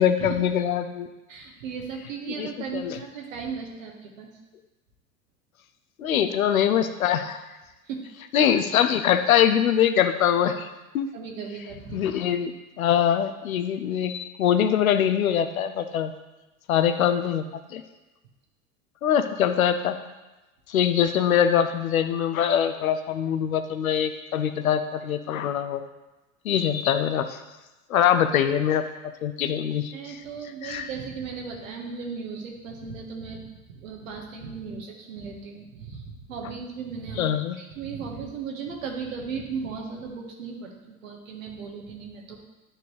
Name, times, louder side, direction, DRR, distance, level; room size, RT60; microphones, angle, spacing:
voice 1, 0.0-1.1 2.4-3.0 6.0-7.4 8.3-10.7 10.9-11.1 11.9-12.5 12.8-16.1 16.7-17.4 17.7-17.8 19.0-19.9 20.7-25.8 26.4-27.4 27.9-30.2 30.6-30.9 37.2-37.6, left 9 dB, 75° left, 10 dB, 0.7 m, -23 dB
voice 2, 1.3-4.3 7.9-8.0 11.1-12.1 29.9-37.2 37.6-42.4, right 5 dB, 65° right, 1 dB, 1.5 m, -36 dB
10.5 x 4.5 x 3.3 m, 1.1 s
figure-of-eight pair, 80°, 42 cm